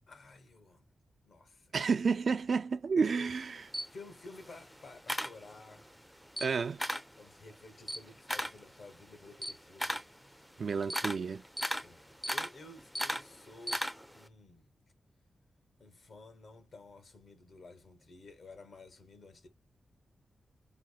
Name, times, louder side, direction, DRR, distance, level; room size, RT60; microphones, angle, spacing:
voice 1, 0.1-0.8 1.2-1.7 2.9-3.3 3.9-5.9 6.4-6.6 7.2-10.5 11.8-14.6 15.8-19.5, left 3 dB, 60° left, 1.3 m, -53 dB
voice 2, 1.7-3.6 6.4-6.8 10.6-11.4, right 5 dB, 55° right, 0.4 m, -30 dB
Camera, 3.3-5.9 6.2-7.2 7.5-14.2, equal, ahead, 0.5 m, -37 dB
5.7 x 2.1 x 2.3 m
wide cardioid pair, 95°, 0 cm